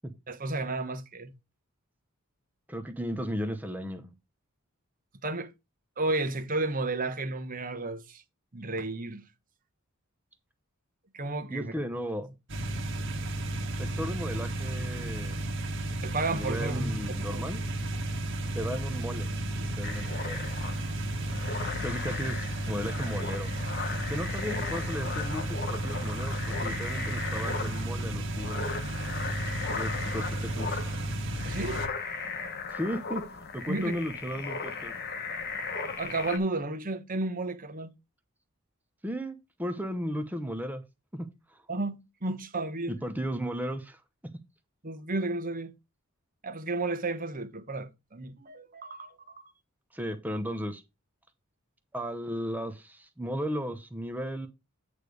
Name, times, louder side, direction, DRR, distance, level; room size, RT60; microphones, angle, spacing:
voice 1, 0.3-1.3 5.2-5.5 6.0-8.2 8.5-9.2 11.1-11.7 16.0-17.4 20.7-20.9 31.4-31.8 33.7-33.9 35.9-37.9 41.7-42.9 44.8-45.7 46.4-49.5, right 2 dB, 40° right, 1.1 m, -32 dB
voice 2, 2.7-4.1 11.5-12.3 13.7-15.4 16.3-17.6 18.5-19.3 19.6-20.5 21.4-23.5 24.1-28.7 29.7-30.8 32.7-34.9 39.0-40.8 41.1-41.6 42.9-44.3 49.9-50.8 51.9-54.5, equal, 10° right, 0.7 m, -35 dB
sound 1, 12.5-31.9, right 1 dB, 60° right, 1.5 m, -33 dB
sound 2, 19.8-36.4, left 4 dB, 45° left, 1.0 m, -37 dB
8.9 x 3.3 x 6.4 m
head